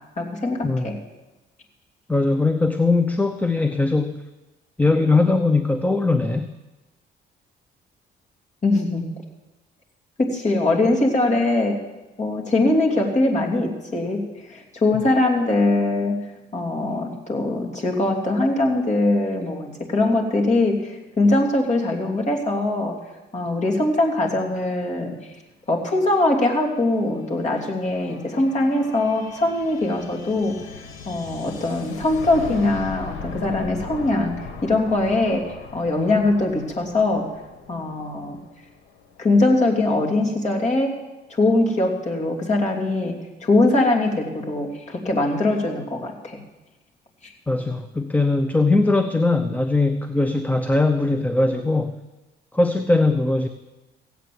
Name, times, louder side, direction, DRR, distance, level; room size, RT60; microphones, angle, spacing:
voice 1, 0.2-0.9 8.6-9.1 10.2-11.8 12.2-16.2 16.5-22.9 23.3-25.2 25.7-30.6 31.0-37.3 37.7-38.4 39.2-41.0 41.3-43.1 43.4-46.4 47.2-47.3, left 2 dB, 35° left, 0 dB, 2.9 m, -22 dB
voice 2, 2.1-4.1 4.8-6.5 47.5-52.0 52.5-53.5, left 3 dB, 10° left, 9 dB, 0.7 m, -20 dB
sound 1, 26.0-39.4, left 4 dB, 85° left, 1.8 m, -39 dB
16.5 x 8.3 x 7.7 m, 1.1 s
cardioid pair, 90°, 20 cm